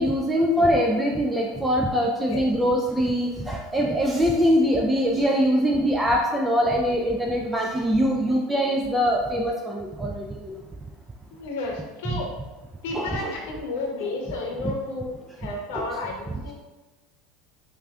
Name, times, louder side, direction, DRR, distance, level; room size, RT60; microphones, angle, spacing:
voice 1, 0.0-10.6 12.1-12.2 12.9-13.3 15.7-15.8, equal, 10° right, -1 dB, 0.4 m, -23 dB
voice 2, 11.3-12.3 12.8-16.5, left 2 dB, 75° left, 1 dB, 0.8 m, -32 dB
5.3 x 2.5 x 2.3 m, 1.2 s
hypercardioid pair, 90°, 0 cm